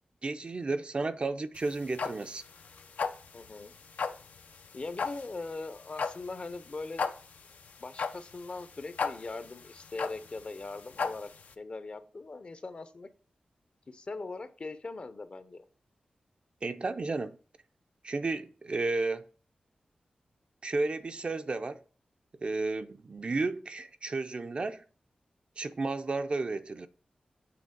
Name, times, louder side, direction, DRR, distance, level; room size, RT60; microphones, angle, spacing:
voice 1, 0.2-2.4 16.6-17.4 18.0-19.2 20.6-21.8 22.4-24.8 25.6-26.9, right 3 dB, 45° right, 0.4 m, -32 dB
sound 1, 1.6-11.5, left 5 dB, 90° left, 0.5 m, -36 dB
voice 2, 3.3-3.7 4.7-7.1 7.8-11.3 11.6-13.1 13.9-15.6, left 3 dB, 45° left, 0.6 m, -40 dB
7.7 x 3.1 x 5.2 m
wide cardioid pair, 90°, 3 cm